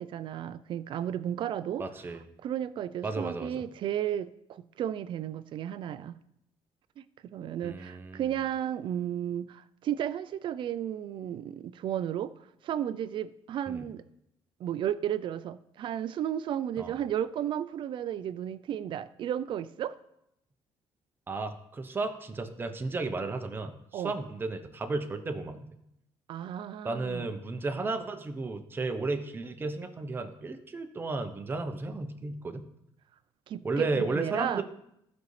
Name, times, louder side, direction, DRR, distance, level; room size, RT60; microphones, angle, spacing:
voice 1, 0.0-1.8 2.4-6.1 7.0-12.3 12.6-14.0 14.6-20.0 23.9-24.1 26.3-27.3 33.5-34.6, right 10 dB, 55° right, 14 dB, 0.4 m, -33 dB
voice 2, 1.8-2.2 3.0-3.5 7.6-8.2 13.7-13.9 16.8-16.9 21.3-25.6 26.8-32.6 33.6-34.6, right 3 dB, 20° right, 6 dB, 0.9 m, -33 dB
14.5 x 5.3 x 3.3 m, 0.79 s
cardioid pair, 125°, 10 cm